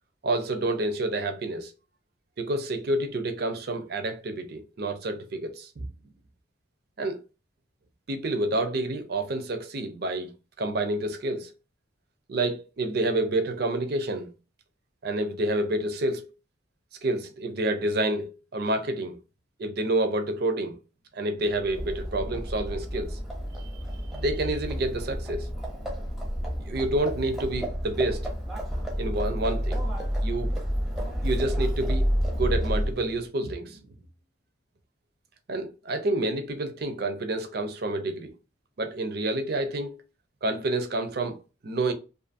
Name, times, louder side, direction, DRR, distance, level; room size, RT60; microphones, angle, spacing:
voice 1, 0.2-1.7 2.4-5.9 7.0-7.2 8.1-11.5 12.3-14.3 15.0-16.3 17.0-19.2 19.6-20.8 21.1-23.2 23.6-23.7 24.1-25.5 26.6-28.3 29.0-29.8 30.2-30.5 31.2-33.9 35.5-38.3 38.8-40.0 40.4-41.9, right 2 dB, 55° right, 0.5 m, -29 dB
Livestock farm animals working animals, 21.5-33.1, equal, ahead, 0.6 m, -30 dB
2.5 x 2.5 x 2.5 m
head